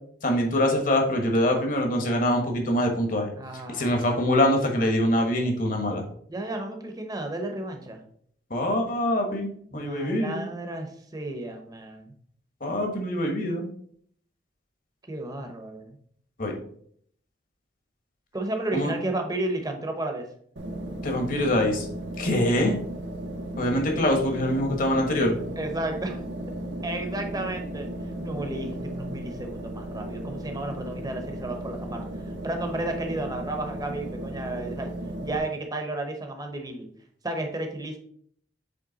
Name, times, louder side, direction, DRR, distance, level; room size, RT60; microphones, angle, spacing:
voice 1, 0.2-3.3 3.7-6.0 8.5-10.4 12.6-13.7 16.4-16.6 18.7-18.9 21.0-21.9 22.2-22.8 23.6-25.4, left 1 dB, 50° left, 3 dB, 1.2 m, -24 dB
voice 2, 3.4-4.0 6.3-8.0 9.7-12.1 15.1-16.0 18.3-20.3 25.6-26.2 26.8-27.9 28.2-32.1 32.4-34.9 35.2-36.8 37.2-38.0, right 2 dB, 20° right, 4 dB, 0.8 m, -32 dB
sound 1, 20.6-35.4, right 1 dB, 80° right, 1.1 m, -35 dB
7.8 x 3.3 x 3.9 m, 0.63 s
head